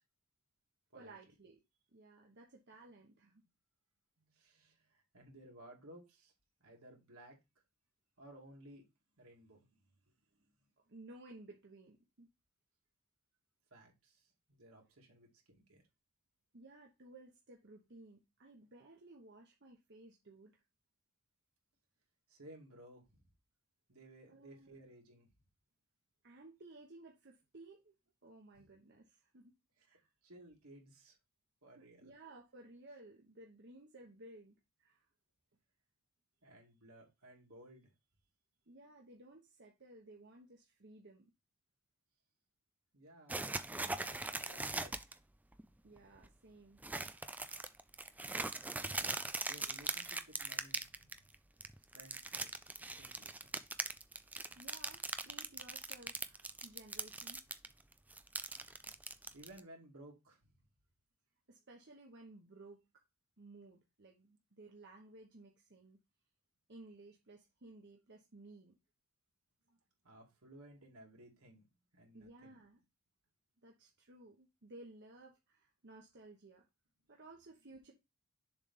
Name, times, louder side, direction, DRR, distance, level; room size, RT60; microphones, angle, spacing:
voice 1, 0.9-1.6 1.9-3.4 4.6-4.7 10.9-12.3 16.5-20.6 24.3-24.8 26.2-27.9 28.2-29.5 29.8-30.1 31.8-35.1 38.7-41.3 45.8-46.9 54.5-57.4 61.5-62.8 63.4-66.0 66.7-68.7 69.7-69.8 72.1-72.8 73.6-76.6 77.1-77.9, right 2 dB, 55° right, 1.0 m, -57 dB
voice 2, 4.3-6.3 6.6-7.4 8.2-8.8 9.2-9.8 10.4-10.5 13.7-15.8 22.3-23.3 23.9-25.3 28.6-28.7 29.9-31.2 31.6-32.1 36.4-37.9 42.9-45.2 49.4-51.3 51.9-53.5 54.5-54.6 59.3-60.5 70.0-71.7 71.9-72.6 77.0-77.2, right 1 dB, 80° right, 2.5 m, -58 dB
sound 1, 43.3-45.1 45.5-45.6 46.0-46.3 46.8-51.3 51.6-57.7 57.9-59.6, right 2 dB, 5° right, 0.4 m, -40 dB
7.1 x 3.3 x 5.4 m
head